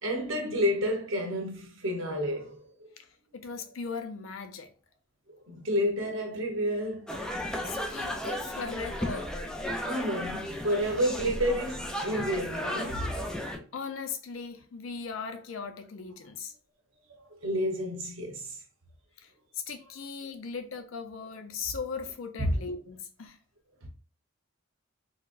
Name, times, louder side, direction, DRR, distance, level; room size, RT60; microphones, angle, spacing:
voice 1, 0.0-2.9 5.3-7.4 9.8-13.2 17.4-18.6 22.4-22.6 23.8-23.9, equal, 75° right, 0.9 m, -30 dB
voice 2, 3.3-4.7 7.6-9.3 13.7-16.5 19.2-23.4, left 5 dB, 90° left, 0.5 m, -38 dB
sound 1, 7.1-13.6, equal, 5° left, 0.4 m, -34 dB
3.9 x 2.2 x 2.5 m
head